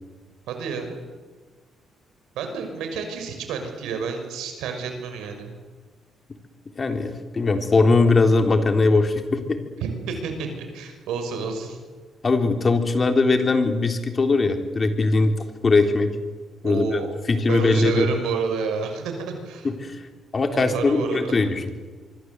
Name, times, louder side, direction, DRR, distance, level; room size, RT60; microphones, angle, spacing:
voice 1, 0.5-0.9 2.4-5.5 9.8-11.8 16.6-17.1 17.5-19.7 20.5-21.4, right 5 dB, 90° right, 6 dB, 5.9 m, -29 dB
voice 2, 6.8-9.6 12.2-15.3 15.6-16.1 16.6-17.0 17.3-18.1 19.6-20.0 20.3-21.7, left 3 dB, 35° left, 5 dB, 3.7 m, -20 dB
25.0 x 24.0 x 8.1 m, 1.4 s
cardioid pair, 90°, 0 cm